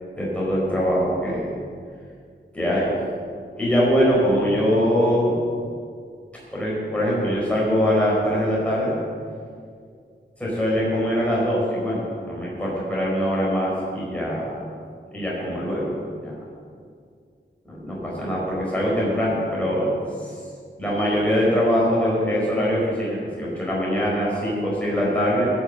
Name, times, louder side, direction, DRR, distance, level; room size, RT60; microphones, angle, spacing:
voice 1, 0.2-1.5 2.5-2.9 3.5-5.4 6.5-8.9 10.4-14.5 15.1-16.0 16.2-16.3 17.7-19.9 20.2-20.3 20.8-25.5, equal, 5° left, -6 dB, 4.6 m, -22 dB
16.5 x 7.3 x 7.6 m, 2.2 s
wide cardioid pair, 85°, 20 cm